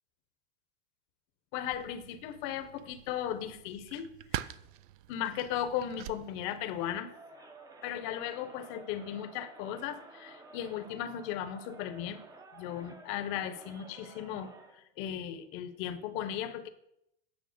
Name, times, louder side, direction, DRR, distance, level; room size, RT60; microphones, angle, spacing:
voice 1, 1.5-4.5 5.1-7.1 7.8-12.2 12.5-14.5 15.0-16.7, left 10 dB, 40° left, 11 dB, 0.9 m, -36 dB
sound 1, 1.6-7.0, right 13 dB, 50° right, 0.5 m, -45 dB
Crowd, 6.7-14.8, right 2 dB, 10° right, 0.8 m, -53 dB
9.4 x 5.7 x 6.6 m, 0.79 s
supercardioid pair, 160°, 32 cm